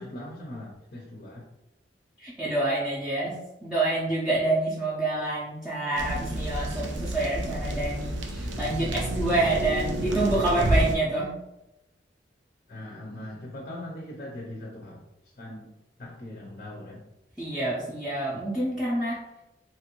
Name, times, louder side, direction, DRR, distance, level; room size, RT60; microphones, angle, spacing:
voice 1, 0.0-1.4 12.7-15.0 15.4-15.7 16.0-17.0 18.3-18.4, left 1 dB, 45° left, -1 dB, 0.5 m, -40 dB
voice 2, 2.2-3.4 3.6-11.3 17.4-19.2, right 2 dB, 5° right, -10 dB, 0.5 m, -27 dB
sound 1, 5.9-11.0, right 1 dB, 80° right, 0.5 m, -29 dB
3.0 x 2.5 x 2.9 m, 0.91 s
head